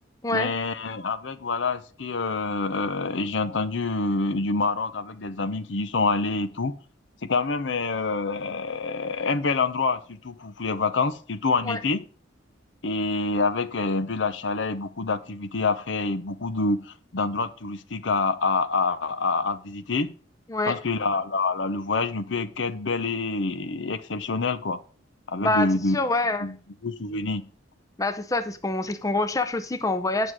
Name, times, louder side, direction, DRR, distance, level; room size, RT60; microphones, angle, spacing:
voice 1, 0.3-6.8 7.2-12.0 12.8-20.1 20.7-24.8 25.3-26.0 26.4-26.5 26.8-27.4, left 3 dB, 65° left, 0.8 m, -27 dB
voice 2, 20.5-20.8 25.4-25.7 25.9-26.5 28.0-30.3, left 2 dB, 15° left, 0.6 m, -26 dB
9.7 x 6.3 x 4.8 m
head